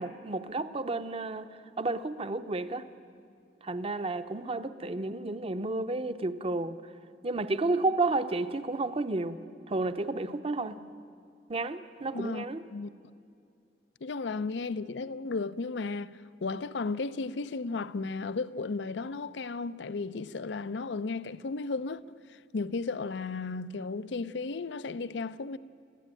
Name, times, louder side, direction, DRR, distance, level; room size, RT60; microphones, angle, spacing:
voice 1, 0.0-2.9 3.6-6.8 7.2-9.4 9.7-10.8 11.5-12.6, right 2 dB, 35° right, 0.7 m, -31 dB
voice 2, 12.1-12.4 12.7-12.9 14.0-22.0 22.3-25.6, left 4 dB, 80° left, 0.5 m, -34 dB
21.5 x 14.5 x 9.0 m
head